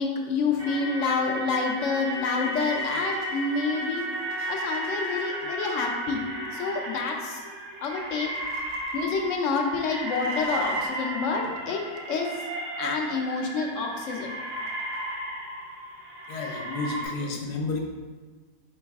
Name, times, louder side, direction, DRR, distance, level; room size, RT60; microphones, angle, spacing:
voice 1, 0.0-4.1 4.5-6.2 6.5-7.4 7.8-8.3 8.9-12.3 12.8-14.3, left 4 dB, 65° left, 2 dB, 0.8 m, -28 dB
sound 1, 0.6-17.0, right 1 dB, 60° right, 1.3 m, -34 dB
voice 2, 16.3-17.8, left 3 dB, 80° left, 2 dB, 1.2 m, -31 dB
4.7 x 3.1 x 3.4 m, 1.4 s
omnidirectional pair, 1.8 m